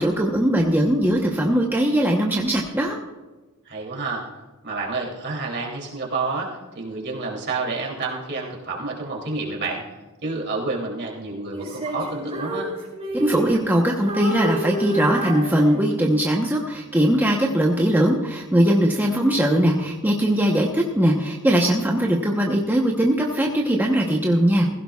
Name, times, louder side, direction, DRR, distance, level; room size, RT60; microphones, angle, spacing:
voice 1, 0.0-3.0 13.1-24.7, right 1 dB, 10° right, -1 dB, 0.9 m, -20 dB
voice 2, 3.6-4.3 4.6-9.9 10.2-12.7, right 3 dB, 50° right, -1 dB, 2.9 m, -29 dB
Female singing, 11.5-13.7 14.1-16.1, right 2 dB, 30° right, 4.5 m, -29 dB
16.0 x 16.0 x 2.4 m, 1.2 s
head